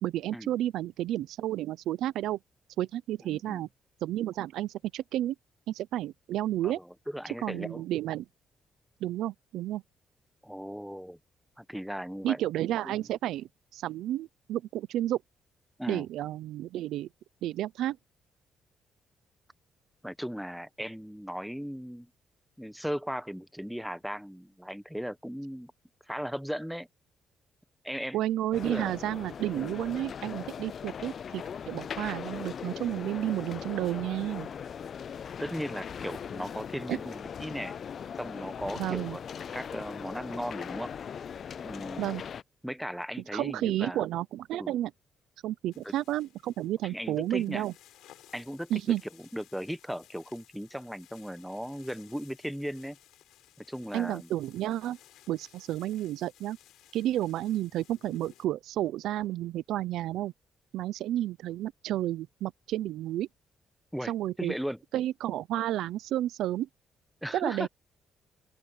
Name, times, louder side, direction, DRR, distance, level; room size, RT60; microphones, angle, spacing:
voice 1, 0.0-2.4 2.8-3.7 4.0-5.4 5.7-6.8 7.4-8.2 9.0-9.8 12.2-15.2 15.9-17.1 17.4-18.0 28.1-34.5 36.9-37.0 38.8-39.2 42.0-42.2 43.3-44.9 45.4-47.7 48.7-49.0 53.9-55.0 55.3-56.6 56.9-60.3 60.7-63.3 64.1-64.5 64.9-66.7 67.3-67.7, right 13 dB, 85° right, 0.6 m, -31 dB
voice 2, 3.2-3.6 6.6-7.8 10.4-11.2 11.6-12.4 12.8-12.9 15.8-16.0 20.0-22.1 22.6-25.7 26.1-26.9 27.8-28.2 28.6-28.9 29.6-29.7 35.4-37.7 38.2-39.2 39.5-40.9 41.6-42.1 42.6-44.0 44.5-44.7 45.8-45.9 46.8-47.6 48.3-48.7 49.2-53.0 53.6-54.3 63.9-64.1 64.4-64.8 67.2-67.7, equal, ahead, 1.1 m, -37 dB
sound 1, 28.5-42.4, left 7 dB, 55° left, 0.4 m, -40 dB
sound 2, 45.7-58.5, left 13 dB, 90° left, 4.5 m, -58 dB
open air
cardioid pair, 90°, 0 cm